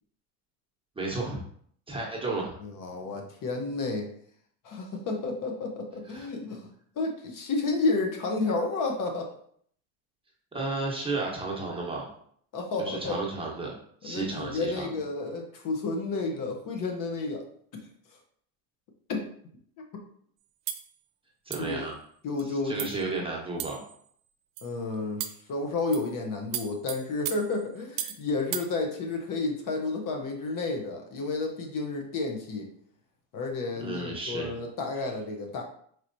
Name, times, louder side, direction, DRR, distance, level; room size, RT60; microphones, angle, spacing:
voice 1, 1.0-1.4 1.9-2.6 6.1-6.3 10.5-12.1 12.8-13.7 14.0-14.9 21.5-21.9 22.4-23.8 33.8-34.6, right 3 dB, 15° right, -3 dB, 1.0 m, -33 dB
voice 2, 2.6-4.1 4.6-6.7 7.0-9.3 12.5-13.2 14.0-17.4 17.7-17.8 19.1-19.3 21.6-21.8 22.2-22.9 24.6-32.7 33.3-35.6, left 3 dB, 50° left, 2 dB, 0.9 m, -31 dB
sound 1, 20.7-20.9 21.5-21.8 22.4-22.5 22.8-23.0 23.6-24.0 24.6-24.7 25.2-25.5 25.9-26.1 26.5-28.2 28.5-28.7, right 11 dB, 80° right, 0.6 m, -36 dB
4.8 x 3.0 x 2.6 m, 0.62 s
cardioid pair, 115°, 42 cm